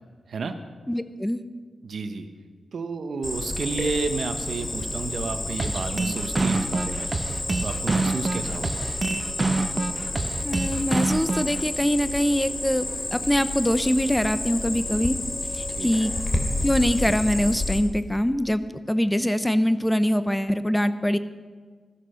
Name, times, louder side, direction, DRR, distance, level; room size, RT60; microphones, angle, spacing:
voice 1, 0.3-0.6 1.8-2.3 2.7-9.0 15.7-16.1, right 4 dB, 70° right, 8 dB, 1.2 m, -31 dB
voice 2, 0.9-1.4 10.4-15.2 15.5-16.1 16.6-21.2, equal, 10° left, 12 dB, 0.9 m, -23 dB
Cricket, 3.2-17.8, left 1 dB, 30° left, 2.8 m, -30 dB
sound 1, 5.6-11.6, right 2 dB, 40° right, 1.2 m, -26 dB
14.0 x 13.5 x 5.8 m, 1.5 s
supercardioid pair, 45°, 0 cm